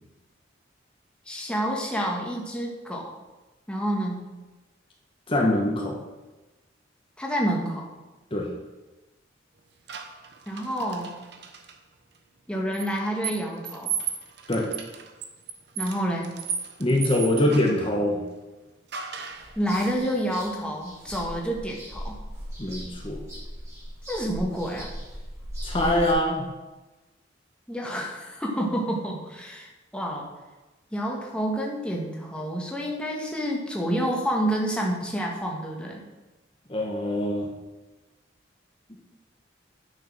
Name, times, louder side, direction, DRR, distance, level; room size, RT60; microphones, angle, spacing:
voice 1, 1.3-3.1 3.7-4.3 7.2-7.9 10.5-11.1 12.5-13.9 15.8-16.3 19.5-22.1 24.1-24.9 27.7-30.3 30.9-36.0, equal, 5° left, -2 dB, 1.6 m, -28 dB
voice 2, 5.3-6.0 8.3-8.5 14.5-14.7 16.8-18.2 22.6-23.2 25.6-26.5 36.7-37.5, left 1 dB, 30° left, -1 dB, 1.3 m, -24 dB
sound 1, 9.9-11.8 12.7-17.9 18.9-19.5, right 7 dB, 60° right, 1.0 m, -35 dB
sound 2, 19.3-26.1, equal, 15° right, 3.0 m, -38 dB
9.6 x 6.5 x 6.2 m, 1.1 s
head